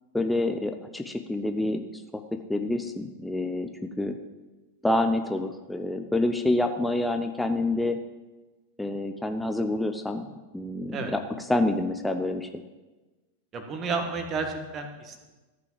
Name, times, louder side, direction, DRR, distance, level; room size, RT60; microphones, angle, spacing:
voice 1, 0.1-3.7 4.0-4.2 4.8-8.0 8.8-10.3 10.5-11.2 11.5-12.6, left 2 dB, 5° left, 6 dB, 0.7 m, -27 dB
voice 2, 13.5-15.2, right 4 dB, 30° right, 5 dB, 1.8 m, -31 dB
13.5 x 6.0 x 7.6 m, 1.2 s
figure-of-eight pair, 90°, 0 cm